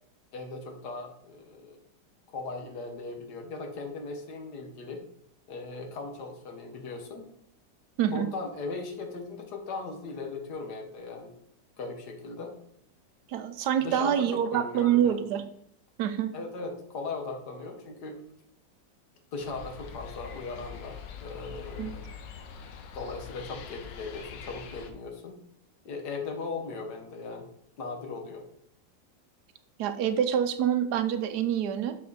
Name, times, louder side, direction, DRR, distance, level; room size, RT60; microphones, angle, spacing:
voice 1, 0.3-1.8 2.3-5.0 5.5-7.3 8.0-11.3 11.8-12.6 13.8-15.2 16.3-18.2 19.3-22.1 22.9-25.4 25.8-27.5 27.8-28.5, left 3 dB, 65° left, 4 dB, 1.6 m, -38 dB
voice 2, 13.3-15.5 16.0-16.3 21.8-22.0 29.8-32.0, right 9 dB, 70° right, 10 dB, 1.1 m, -26 dB
sound 1, 19.4-24.9, left 6 dB, 80° left, 1.4 m, -43 dB
7.4 x 4.2 x 4.0 m, 0.68 s
omnidirectional pair, 1.9 m